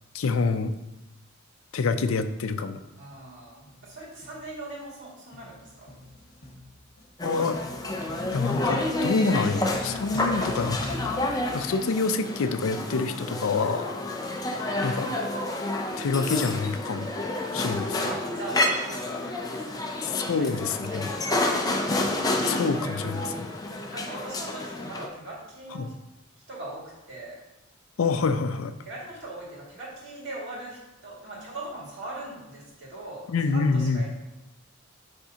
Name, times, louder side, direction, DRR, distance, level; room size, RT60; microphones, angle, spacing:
voice 1, 0.1-0.7 1.7-2.8 7.2-7.6 8.3-10.8 11.5-13.9 14.8-15.1 16.0-17.1 17.5-18.0 20.0-21.1 22.4-23.5 25.7-25.9 28.0-28.7 33.3-34.0, left 4 dB, 75° left, 10 dB, 0.4 m, -27 dB
voice 2, 3.0-5.9 18.0-20.0 20.4-20.5 20.9-21.6 23.9-25.9 26.5-27.4 28.8-34.1, right 2 dB, 60° right, -5 dB, 2.1 m, -40 dB
sound 1, 3.1-3.4 3.7-12.2, left 1 dB, 50° left, 1.2 m, -42 dB
sound 2, 7.2-25.1, left 2 dB, 20° left, 0.6 m, -29 dB
9.7 x 3.5 x 2.8 m, 0.96 s
head